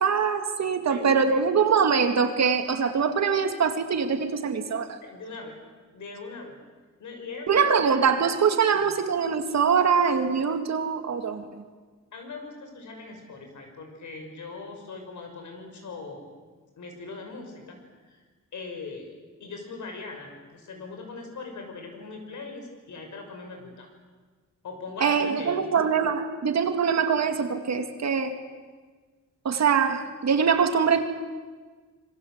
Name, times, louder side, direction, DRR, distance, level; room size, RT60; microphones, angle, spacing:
voice 1, 0.0-5.0 7.5-11.6 25.0-28.4 29.4-31.0, right 6 dB, 60° right, 6 dB, 2.4 m, -23 dB
voice 2, 0.8-1.4 5.0-5.6 5.9-6.6 7.0-7.9 8.7-8.9 12.1-16.2 16.8-18.2 18.5-19.1 19.4-23.9 24.6-25.6, left 3 dB, 70° left, 4 dB, 6.3 m, -40 dB
27.0 x 23.5 x 8.2 m, 1.4 s
wide cardioid pair, 155°, 31 cm